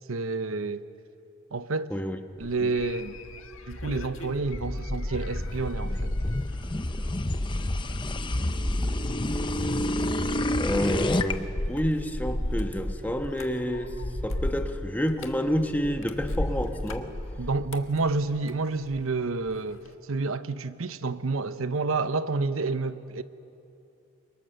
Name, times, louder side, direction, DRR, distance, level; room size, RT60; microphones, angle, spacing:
voice 1, 0.1-0.8 1.5-1.9 2.4-3.2 3.7-6.1 17.4-23.2, right 3 dB, 90° right, 0.9 m, -29 dB
sound 1, 2.4-19.1 19.5-19.9, left 1 dB, 80° left, 1.7 m, -36 dB
sound 2, 3.3-11.3, left 1 dB, 25° left, 0.7 m, -29 dB
voice 2, 10.6-13.9 14.2-17.1, equal, 10° left, 1.2 m, -29 dB
29.5 x 24.5 x 6.9 m
head